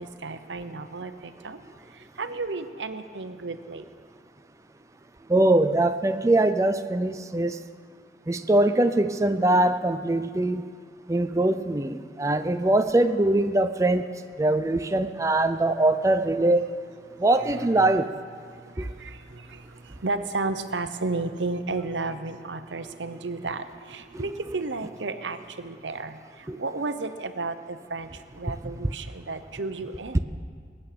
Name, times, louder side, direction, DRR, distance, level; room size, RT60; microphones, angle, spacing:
voice 1, 0.0-1.6 1.9-3.8 17.1-17.9 18.5-30.2, right 3 dB, 85° right, 10 dB, 0.9 m, -33 dB
voice 2, 5.3-7.6 8.3-10.7 11.1-14.1 14.4-16.7 17.2-18.1 18.8-18.9 24.1-24.2 26.5-26.6, right 2 dB, 15° right, 8 dB, 0.4 m, -22 dB
22.0 x 8.8 x 6.8 m, 2.1 s
head